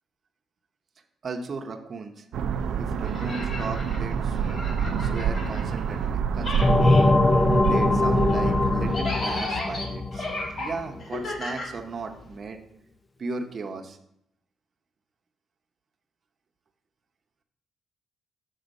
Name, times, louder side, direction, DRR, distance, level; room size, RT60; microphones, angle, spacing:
voice 1, 1.2-2.3 2.8-4.6 5.0-6.9 7.6-10.3 10.6-12.6 13.2-14.0, right 4 dB, 45° right, 4 dB, 0.8 m, -36 dB
sound 1, 2.3-9.0, right 7 dB, 75° right, 0.5 m, -27 dB
sound 2, 3.0-6.1 6.4-12.4, left 2 dB, 55° left, 1.8 m, -35 dB
sound 3, 6.6-11.0, left 2 dB, 25° left, 0.4 m, -22 dB
6.5 x 3.9 x 5.2 m, 0.75 s
cardioid pair, 90°, 0 cm